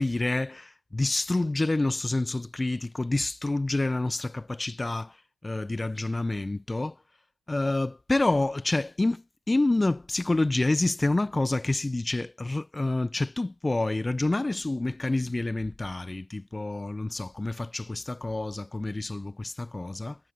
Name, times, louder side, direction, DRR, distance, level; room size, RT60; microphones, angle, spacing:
voice 1, 0.0-5.2 5.4-7.0 7.5-20.2, left 2 dB, 20° left, 1.4 m, -28 dB
figure-of-eight pair, 40°, 0 cm